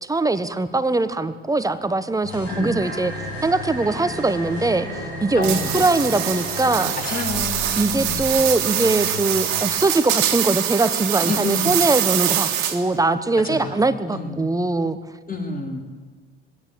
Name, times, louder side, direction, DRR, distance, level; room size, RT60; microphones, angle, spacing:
voice 1, 0.0-3.1 3.4-4.9 5.2-6.9 7.8-15.0, right 2 dB, 10° right, 12 dB, 1.2 m, -21 dB
sound 1, 2.2-9.7, left 1 dB, 75° left, 7.3 m, -33 dB
voice 2, 5.4-5.9 7.0-8.4 11.2-11.8 13.4-13.8 14.1-14.5 15.3-15.8, left 2 dB, 25° left, 2 dB, 3.7 m, -29 dB
sound 2, 5.4-13.0, right 11 dB, 50° right, 2.1 m, -24 dB
21.0 x 16.0 x 8.6 m, 1.5 s
figure-of-eight pair, 55°, 34 cm